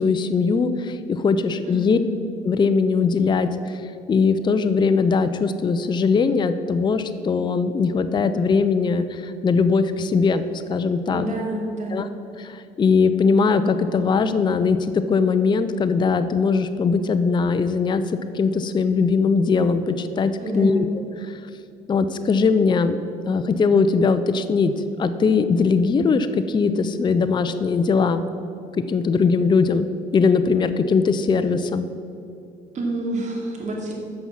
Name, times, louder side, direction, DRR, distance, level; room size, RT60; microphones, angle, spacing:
voice 1, 0.0-2.0 2.4-3.5 4.1-10.4 10.7-11.2 11.9-12.1 12.8-14.8 15.1-18.0 18.3-20.3 20.6-20.9 21.9-23.0 23.3-24.7 25.0-28.2 28.9-29.9 30.1-31.9, left 5 dB, 25° left, 10 dB, 0.5 m, -20 dB
voice 2, 1.6-2.1 11.1-12.1 20.4-20.9 32.7-33.9, right 1 dB, 45° right, -1 dB, 2.5 m, -28 dB
9.5 x 6.2 x 7.2 m, 2.6 s
cardioid pair, 110°, 17 cm